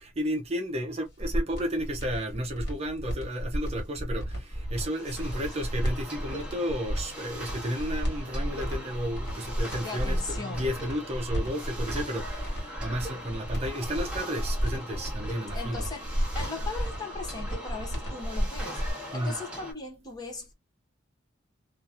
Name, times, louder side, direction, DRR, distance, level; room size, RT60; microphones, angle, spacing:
voice 1, 0.0-15.9 19.1-19.4, equal, 30° right, 0.6 m, -33 dB
sound 1, 1.1-18.9, equal, 55° left, 1.6 m, -32 dB
sound 2, 4.5-19.7, equal, 5° right, 1.1 m, -41 dB
voice 2, 5.0-5.5 9.8-10.7 15.5-20.5, left 4 dB, 20° left, 0.7 m, -39 dB
2.8 x 2.5 x 2.5 m
head